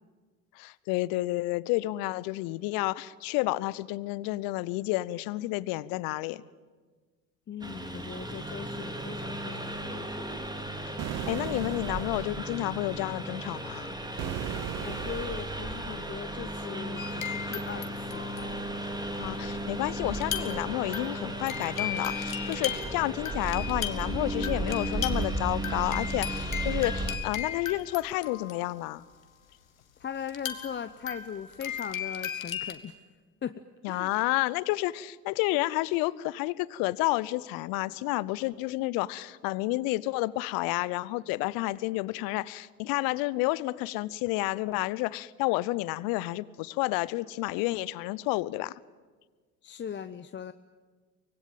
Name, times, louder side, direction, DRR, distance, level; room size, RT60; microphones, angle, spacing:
voice 1, 0.6-6.4 10.3-10.4 11.3-13.9 19.2-29.0 33.8-48.7, left 19 dB, 60° left, 21 dB, 0.9 m, -30 dB
voice 2, 7.5-10.5 14.8-18.3 30.0-32.9 33.4-33.6 33.9-34.1 49.6-50.5, left 8 dB, 30° left, 11 dB, 0.8 m, -39 dB
Engine, 7.6-27.2, right 1 dB, 10° right, 3.3 m, -35 dB
sound 1, 11.0-12.4 14.2-15.6, right 14 dB, 40° right, 0.6 m, -37 dB
sound 2, 17.0-17.9 18.1-18.9 20.1-20.7 20.9-28.9 30.3-32.7, left 9 dB, 85° left, 1.7 m, -36 dB
24.5 x 19.5 x 9.2 m, 1.4 s
figure-of-eight pair, 60°, 40 cm